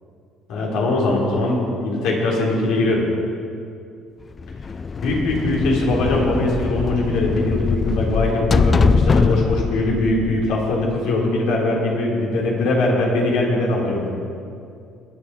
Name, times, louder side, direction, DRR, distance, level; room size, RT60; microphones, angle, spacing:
voice 1, 0.5-3.0 5.0-14.1, left 2 dB, 80° left, -3 dB, 3.8 m, -21 dB
sound 1, 4.4-11.1, left 5 dB, 25° left, 0.3 m, -22 dB
21.5 x 8.9 x 4.9 m, 2.5 s
cardioid pair, 130°, 0 cm